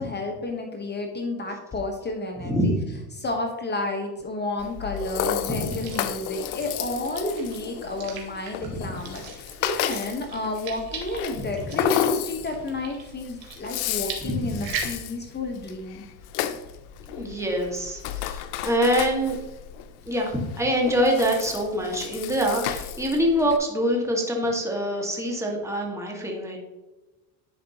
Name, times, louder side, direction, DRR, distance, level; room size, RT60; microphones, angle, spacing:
voice 1, 0.0-2.6 3.2-16.0, left 2 dB, 25° left, 3 dB, 1.2 m, -31 dB
voice 2, 2.4-2.7 5.5-5.7 8.6-8.7 14.2-14.4 17.1-19.4 20.1-26.6, equal, 5° right, -1 dB, 1.8 m, -25 dB
Rattle (instrument), 4.6-23.6, left 11 dB, 75° left, 0.7 m, -32 dB
sound 1, 5.4-15.0, right 6 dB, 60° right, 2.0 m, -40 dB
10.5 x 5.1 x 2.9 m, 1.1 s
supercardioid pair, 105°, 41 cm